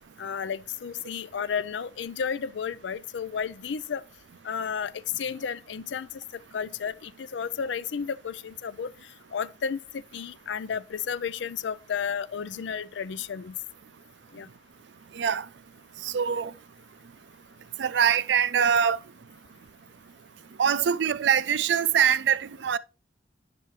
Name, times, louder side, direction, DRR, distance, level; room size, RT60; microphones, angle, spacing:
voice 1, 0.2-4.0 4.4-8.9 9.3-13.5 14.3-14.5, left 7 dB, 85° left, 0.4 m, -32 dB
voice 2, 16.0-16.5 17.8-19.0 20.6-22.8, right 8 dB, 75° right, 0.4 m, -23 dB
9.0 x 6.7 x 3.2 m
head